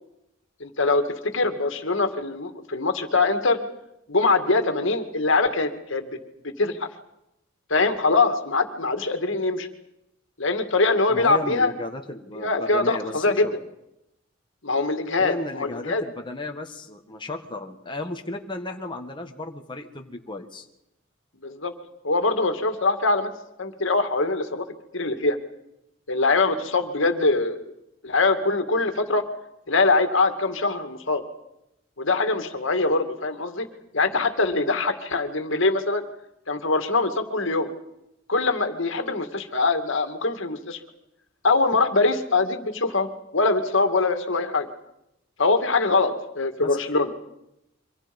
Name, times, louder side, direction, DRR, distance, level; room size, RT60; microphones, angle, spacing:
voice 1, 0.6-3.6 4.1-6.2 6.4-6.9 7.7-9.7 10.4-11.7 12.4-13.5 14.6-16.0 21.4-21.7 22.0-23.3 23.6-24.7 24.9-25.4 26.1-27.6 28.0-29.2 29.7-31.2 32.0-33.7 33.9-36.0 36.5-37.7 38.3-40.8 41.4-44.7 45.4-47.1, left 3 dB, 70° left, 7 dB, 2.3 m, -23 dB
voice 2, 11.1-13.5 15.2-20.7 46.6-46.7, left 2 dB, 25° left, 2 dB, 1.8 m, -34 dB
28.0 x 25.0 x 5.4 m, 0.85 s
head